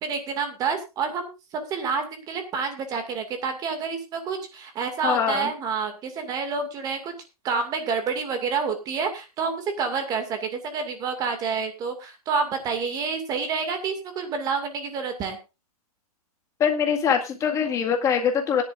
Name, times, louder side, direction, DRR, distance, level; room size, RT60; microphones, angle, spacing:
voice 1, 0.0-1.3 1.7-7.1 7.4-15.4, right 5 dB, 20° right, 7 dB, 2.2 m, -28 dB
voice 2, 5.0-5.5 16.6-18.6, left 7 dB, 15° left, 3 dB, 1.9 m, -23 dB
19.0 x 10.5 x 2.5 m, 0.27 s
hypercardioid pair, 155°, 19 cm